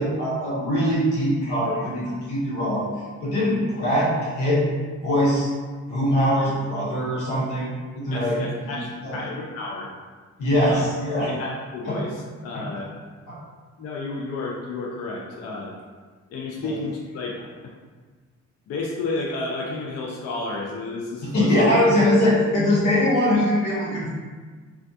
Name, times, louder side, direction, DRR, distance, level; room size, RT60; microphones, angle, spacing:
voice 1, 0.0-2.9 3.2-4.6 5.0-5.5 5.9-7.7 7.9-8.4 8.6-8.8 9.0-9.2 10.4-11.3 11.8-12.0 12.5-12.6 13.3-13.4 21.3-24.1, left 1 dB, 90° left, -7 dB, 0.9 m, -22 dB
voice 2, 8.1-9.9 10.7-10.9 11.2-12.9 13.8-15.7 16.3-17.4 17.6-17.7 18.7-21.6, left 3 dB, 55° left, -2 dB, 0.4 m, -31 dB
2.3 x 2.2 x 2.6 m, 1.5 s
cardioid pair, 90°, 30 cm